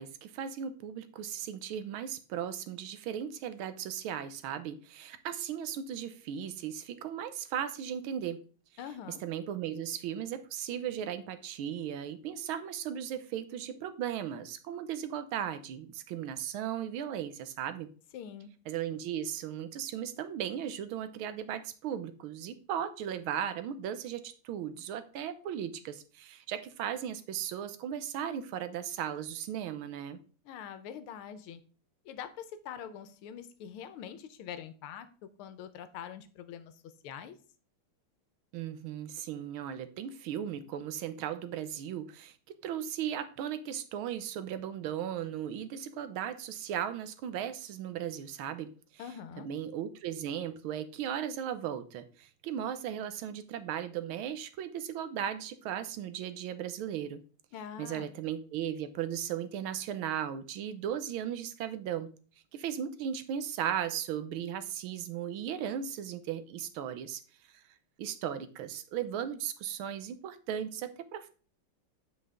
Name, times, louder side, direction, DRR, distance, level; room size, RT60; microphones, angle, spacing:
voice 1, 0.0-8.4 9.1-17.9 18.7-30.2 38.5-48.7 49.4-57.2 57.8-62.1 62.5-67.2 67.5-67.6 68.0-71.3, right 9 dB, 80° right, 1.5 m, -36 dB
voice 2, 8.8-9.2 18.1-18.5 30.4-31.6 32.0-35.1 35.4-37.4 49.0-49.5 57.5-58.1, left 8 dB, 85° left, 1.6 m, -44 dB
7.9 x 5.2 x 3.6 m
omnidirectional pair, 2.3 m